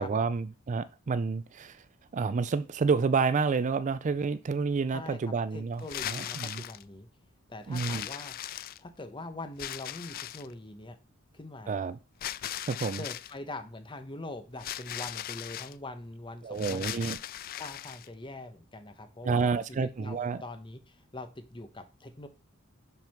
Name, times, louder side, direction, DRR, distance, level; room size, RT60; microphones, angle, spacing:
voice 1, 0.0-1.8 2.1-6.6 7.7-8.1 11.7-12.0 12.7-13.0 16.4-17.2 19.2-20.4, right 5 dB, 35° right, 0.4 m, -29 dB
voice 2, 4.9-7.1 7.5-8.3 8.8-11.0 11.3-11.8 13.0-17.0 17.6-22.3, left 2 dB, 25° left, 0.9 m, -43 dB
sound 1, 5.8-6.8 7.7-9.0 9.6-10.5 12.2-13.3 14.6-15.7 16.6-18.1, left 12 dB, 45° left, 0.3 m, -38 dB
5.8 x 5.4 x 5.8 m
head